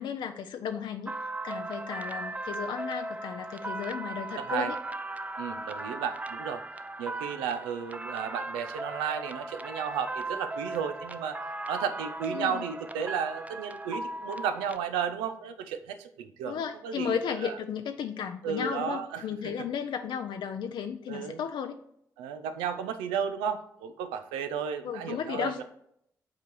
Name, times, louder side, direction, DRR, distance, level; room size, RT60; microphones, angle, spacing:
voice 1, 0.0-4.8 12.3-12.6 16.5-21.8 24.8-25.6, left 7 dB, 70° left, 6 dB, 0.4 m, -34 dB
sound 1, 1.1-14.8, right 2 dB, 15° right, 0.5 m, -37 dB
voice 2, 4.3-4.7 5.4-6.6 7.0-11.4 11.7-17.6 18.4-19.7 21.1-21.4 22.2-25.6, right 7 dB, 90° right, 9 dB, 0.5 m, -33 dB
7.2 x 3.9 x 4.6 m, 0.72 s
hypercardioid pair, 45°, 8 cm